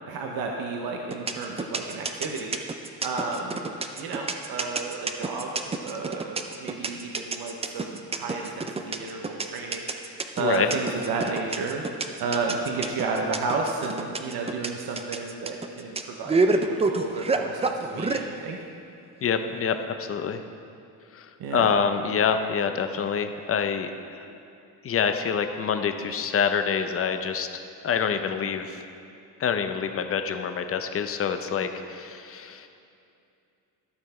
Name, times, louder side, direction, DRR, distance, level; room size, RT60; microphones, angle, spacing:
voice 1, 0.1-2.6 3.0-5.5 5.8-18.6 21.4-21.7, right 4 dB, 70° right, 1 dB, 0.9 m, -32 dB
sound 1, 1.1-18.2, right 3 dB, 15° right, 0.4 m, -27 dB
voice 2, 19.2-20.4 21.1-21.3 21.5-23.9 24.1-24.4 24.8-27.5 27.8-28.8 29.4-32.7, left 6 dB, 35° left, 8 dB, 0.6 m, -26 dB
12.5 x 5.9 x 4.3 m, 2.5 s
cardioid pair, 110°, 38 cm